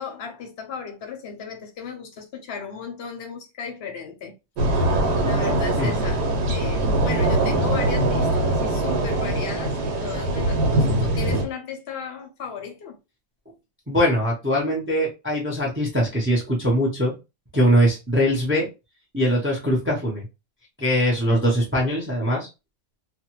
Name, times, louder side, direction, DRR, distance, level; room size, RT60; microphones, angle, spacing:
voice 1, 0.0-4.3 4.6-6.2 6.5-13.0, left 6 dB, 55° left, 0.7 m, -35 dB
sound 1, 4.6-11.5, right 1 dB, 85° right, 1.3 m, -22 dB
voice 2, 13.9-17.1 17.5-18.7 19.1-20.3 20.8-22.5, equal, 15° right, 0.4 m, -21 dB
2.6 x 2.3 x 2.9 m
omnidirectional pair, 1.7 m